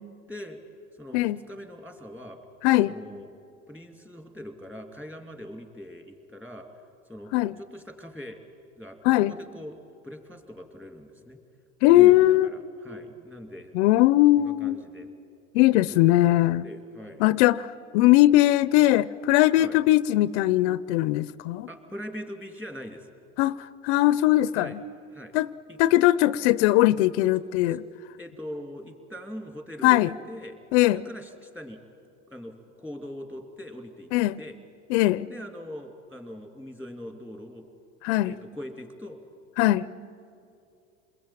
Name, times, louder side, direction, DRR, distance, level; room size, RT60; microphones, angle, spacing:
voice 1, 0.3-0.6 0.9-2.4 2.8-3.3 3.7-6.7 7.1-8.4 8.8-9.8 10.0-11.4 11.8-13.8 14.3-15.1 15.9-16.0 16.6-17.3 19.6-19.8 21.7-23.2 24.5-24.8 25.1-25.4 25.7-25.8 27.7-27.8 28.2-30.6 30.9-31.8 32.3-34.1 34.4-34.6 35.3-37.7 38.2-39.2, equal, 5° right, 5 dB, 2.8 m, -41 dB
voice 2, 2.6-2.9 7.3-7.5 9.0-9.3 11.8-12.5 13.7-14.8 15.5-16.7 17.2-17.7 17.9-21.7 23.4-23.6 23.8-24.8 25.3-25.5 25.8-27.8 29.8-30.1 30.7-31.0 34.1-34.4 34.9-35.3 38.0-38.4 39.6-39.9, left 16 dB, 75° left, 17 dB, 0.6 m, -20 dB
28.0 x 21.5 x 9.0 m, 2.6 s
supercardioid pair, 130°, 36 cm